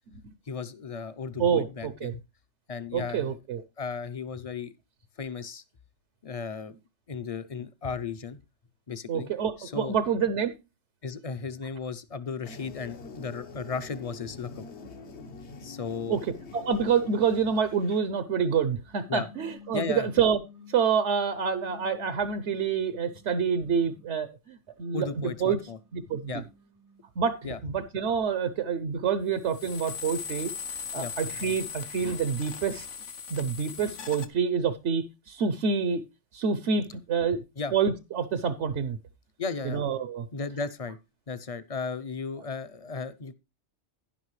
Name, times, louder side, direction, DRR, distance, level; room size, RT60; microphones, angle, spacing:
voice 1, 0.5-2.2 2.7-3.4 3.8-4.7 5.2-5.6 6.2-6.8 7.1-8.4 8.9-9.3 9.6-10.0 11.0-14.6 15.6-16.2 19.1-19.3 19.7-20.1 24.9-25.8 26.3-26.5 27.4-27.6 31.0-31.1 37.6-37.7 39.4-39.8 40.3-41.0 41.3-43.3, left 5 dB, 40° left, 14 dB, 0.6 m, -35 dB
voice 2, 1.4-2.1 2.9-3.6 9.1-10.5 16.1-20.4 20.7-25.6 25.9-26.3 27.2-30.5 30.9-32.9 33.3-36.0 36.3-37.4 37.7-39.0 39.6-40.2, right 6 dB, 75° right, 12 dB, 1.1 m, -27 dB
sound 1, 12.4-18.0, left 4 dB, 65° left, 1.4 m, -45 dB
sound 2, 18.9-20.9 21.5-24.2 24.8-27.1, left 6 dB, 25° right, 0.5 m, -53 dB
sound 3, 29.5-34.3, left 6 dB, 85° left, 1.4 m, -38 dB
11.5 x 10.5 x 3.2 m, 0.26 s
omnidirectional pair, 1.2 m